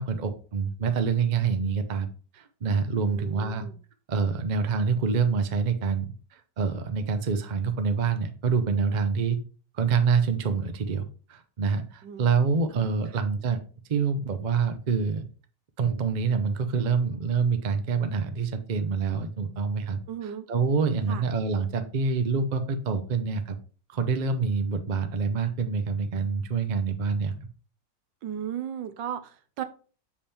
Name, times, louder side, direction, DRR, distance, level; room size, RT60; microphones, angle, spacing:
voice 1, 0.0-2.1 2.3-3.7 4.1-9.4 9.7-11.0 11.3-13.6 13.9-15.2 15.8-23.6 23.9-27.3, right 5 dB, 65° right, 8 dB, 0.4 m, -26 dB
voice 2, 3.0-3.8 12.0-12.4 12.7-12.8 13.1-13.2 20.1-20.5 21.1-21.2 28.2-29.6, right 9 dB, 85° right, 10 dB, 1.4 m, -36 dB
7.1 x 4.9 x 3.4 m, 0.39 s
omnidirectional pair, 2.0 m